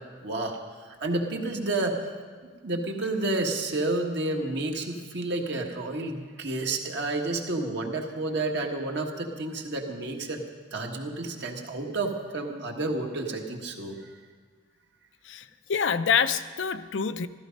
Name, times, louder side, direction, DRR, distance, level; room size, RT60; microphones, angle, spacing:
voice 1, 0.2-2.1 2.6-10.4 10.7-14.2, right 2 dB, 60° right, 2 dB, 1.5 m, -30 dB
voice 2, 15.7-17.3, left 6 dB, 65° left, 12 dB, 0.5 m, -26 dB
14.0 x 14.0 x 5.2 m, 1.5 s
head